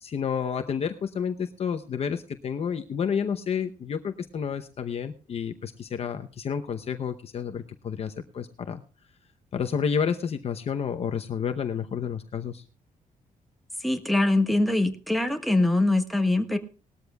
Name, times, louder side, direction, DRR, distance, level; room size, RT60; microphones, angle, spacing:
voice 1, 0.0-8.8 9.5-12.6, left 7 dB, 45° left, 7 dB, 0.8 m, -30 dB
voice 2, 13.8-16.6, left 2 dB, ahead, 4 dB, 1.4 m, -23 dB
19.5 x 13.5 x 2.3 m, 0.34 s
cardioid pair, 150°, 14 cm